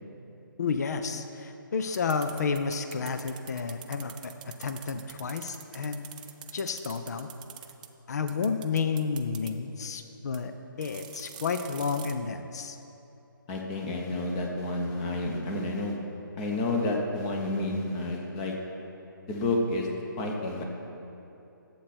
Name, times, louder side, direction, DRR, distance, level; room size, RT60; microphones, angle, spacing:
voice 1, 0.6-6.0 6.5-7.3 8.1-10.5 10.8-12.8 20.3-20.6, left 5 dB, 50° left, 8 dB, 0.6 m, -31 dB
sound 1, 1.9-7.9 8.3-9.5 10.3-10.4 10.8-12.1, right 10 dB, 20° right, 0.4 m, -45 dB
voice 2, 13.5-16.0 16.4-18.6 19.3-19.9 20.2-20.6, left 2 dB, 20° left, 0 dB, 1.1 m, -30 dB
11.5 x 7.8 x 4.3 m, 2.9 s
figure-of-eight pair, 145°, 11 cm